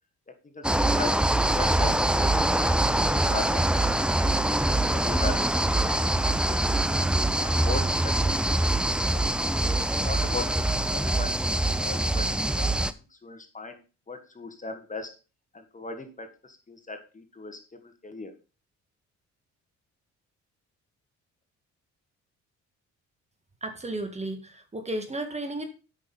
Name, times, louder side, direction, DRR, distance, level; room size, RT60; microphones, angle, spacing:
voice 1, 0.4-3.9 4.2-6.8 7.4-9.3 9.8-11.4 11.8-13.8 14.1-15.1 15.5-18.3, left 3 dB, 25° left, 6 dB, 1.6 m, -39 dB
sound 1, 0.6-12.9, right 1 dB, 5° right, 0.5 m, -24 dB
voice 2, 23.6-25.6, right 1 dB, 20° right, 7 dB, 1.8 m, -33 dB
8.3 x 6.1 x 5.5 m, 0.33 s
cardioid pair, 90°, 30 cm